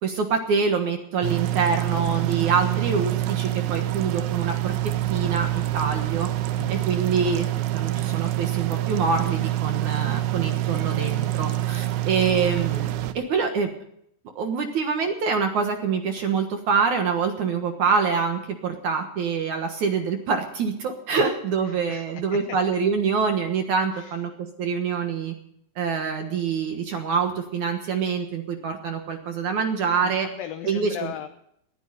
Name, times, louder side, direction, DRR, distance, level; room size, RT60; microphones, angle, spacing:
voice 1, 0.0-6.3 6.7-13.7 14.4-24.3 24.6-25.3 25.8-30.3 30.6-31.1, right 5 dB, 60° right, 5 dB, 2.3 m, -25 dB
sound 1, 1.2-13.1, right 14 dB, 80° right, 3.0 m, -26 dB
voice 2, 21.7-22.6 23.9-24.2 30.0-31.3, left 11 dB, 70° left, 7 dB, 2.4 m, -38 dB
20.5 x 15.0 x 4.1 m, 0.72 s
omnidirectional pair, 4.9 m